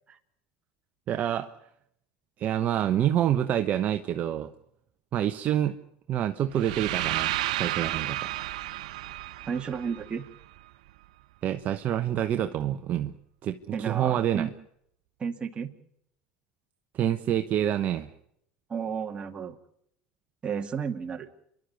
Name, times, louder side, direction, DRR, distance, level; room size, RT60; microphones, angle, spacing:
voice 1, 1.1-1.5 2.4-4.5 5.1-5.8 6.1-8.3 11.4-13.1 13.4-14.5 16.9-18.1, right 11 dB, 45° right, 8 dB, 1.1 m, -27 dB
sound 1, 6.5-10.6, right 15 dB, 80° right, 0.9 m, -32 dB
voice 2, 9.5-10.2 13.7-14.5 15.2-15.7 18.7-19.6 20.4-21.3, right 6 dB, 30° right, 5 dB, 2.3 m, -32 dB
28.0 x 12.0 x 9.7 m, 0.72 s
hypercardioid pair, 95°, 4 cm